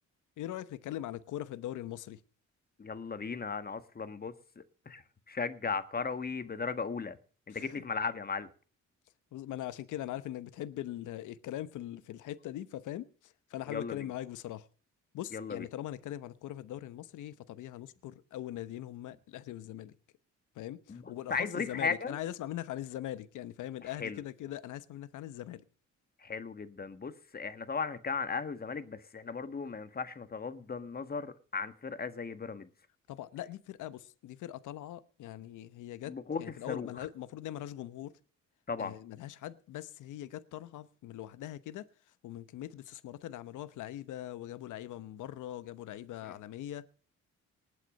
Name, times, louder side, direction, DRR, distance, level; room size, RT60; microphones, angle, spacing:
voice 1, 0.4-2.2 7.5-7.8 9.3-14.7 15.1-19.9 20.5-25.6 33.1-38.1 38.8-41.9 42.2-46.9, left 13 dB, 80° left, 1.0 m, -41 dB
voice 2, 2.8-7.2 7.5-8.5 13.7-14.0 15.3-15.7 20.9-21.0 21.3-22.2 24.0-24.2 26.2-32.7 36.1-36.9 38.7-38.9, left 5 dB, 30° left, 1.6 m, -36 dB
19.5 x 8.4 x 6.4 m
cardioid pair, 90°, 30 cm